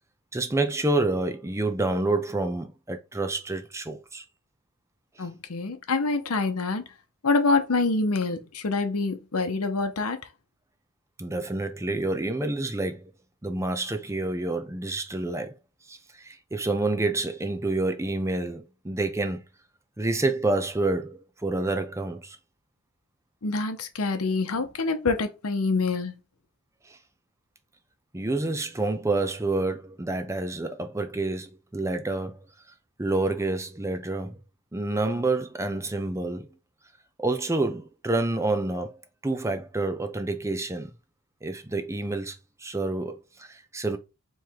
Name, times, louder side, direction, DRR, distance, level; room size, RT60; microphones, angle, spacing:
voice 1, 0.3-4.2 11.2-13.1 13.4-15.6 15.9-19.4 20.0-22.4 26.9-27.0 28.1-32.4 33.0-34.4 34.7-36.5 37.2-39.0 39.2-40.9 41.4-42.3 42.6-44.0, right 2 dB, 15° right, 0.6 m, -28 dB
voice 2, 5.2-6.8 7.2-10.2 23.4-26.2, left 3 dB, 85° left, 0.8 m, -26 dB
4.7 x 3.1 x 3.5 m
head